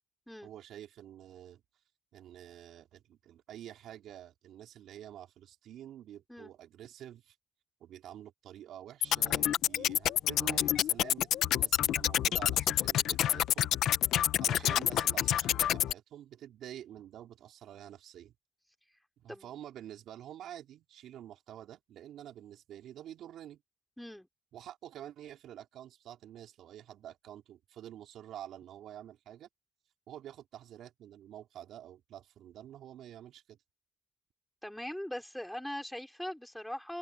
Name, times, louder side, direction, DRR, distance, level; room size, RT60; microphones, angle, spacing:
voice 1, 0.4-1.6 2.1-7.4 7.8-13.7 14.4-18.3 19.2-23.6 24.5-29.5 30.1-33.6, right 11 dB, 75° right, 4.6 m, -48 dB
sound 1, 9.0-15.9, left 11 dB, 80° left, 1.5 m, -28 dB
voice 2, 14.5-14.8 19.3-19.5 24.0-24.3 34.6-37.0, equal, 5° left, 5.1 m, -41 dB
cardioid pair, 90°, 0 cm